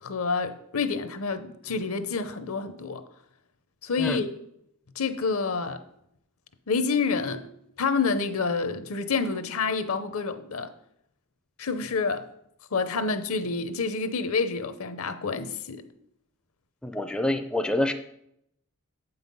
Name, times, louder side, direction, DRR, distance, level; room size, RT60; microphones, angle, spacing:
voice 1, 0.0-3.0 3.8-4.3 5.0-5.8 6.7-7.5 7.8-10.7 11.6-12.3 12.7-15.8, left 4 dB, 65° left, 0.7 m, -28 dB
voice 2, 16.8-17.9, left 1 dB, 5° left, 0.4 m, -26 dB
8.1 x 5.6 x 5.4 m
head